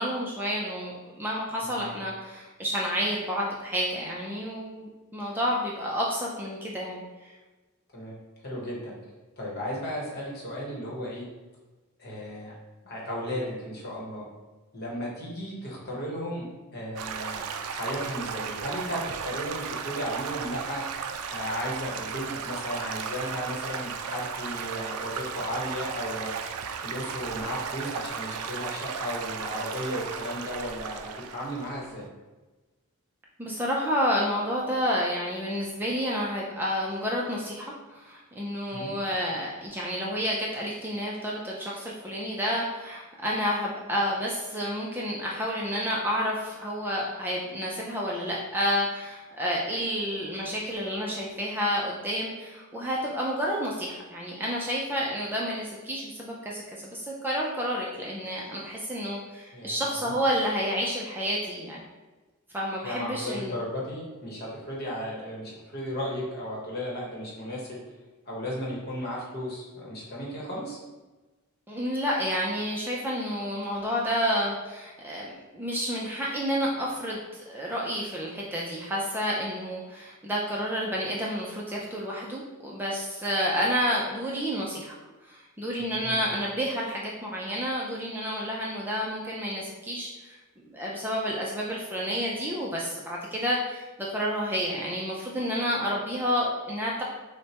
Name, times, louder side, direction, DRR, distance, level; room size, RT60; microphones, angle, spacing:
voice 1, 0.0-7.3 33.4-61.8 62.5-63.5 71.7-84.9 85.2-90.4 90.6-97.0, equal, 10° right, -4 dB, 0.4 m, -30 dB
voice 2, 1.6-2.0 7.9-8.1 8.4-8.9 9.4-11.2 12.0-12.5 12.8-14.3 14.7-16.5 16.7-20.8 21.3-26.3 26.8-32.1 38.7-38.9 59.5-60.2 62.8-67.8 68.2-70.8 85.8-86.2, equal, 45° left, -4 dB, 1.1 m, -35 dB
Stream / Gurgling / Trickle dribble, 17.0-32.1, right 6 dB, 80° right, 0.4 m, -35 dB
6.3 x 2.2 x 2.9 m, 1.2 s
head